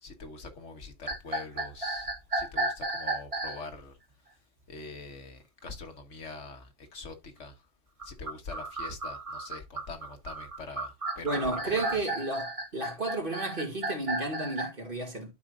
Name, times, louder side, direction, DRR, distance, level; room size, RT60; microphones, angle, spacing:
voice 1, 0.0-4.0 4.7-7.6 8.0-11.3 11.7-11.8, left 3 dB, 90° left, 1.6 m, -44 dB
sound 1, 1.1-3.6 8.0-14.7, right 2 dB, 30° right, 1.1 m, -34 dB
voice 2, 11.2-15.3, right 2 dB, 50° right, 2.3 m, -32 dB
12.0 x 4.7 x 2.5 m
omnidirectional pair, 1.2 m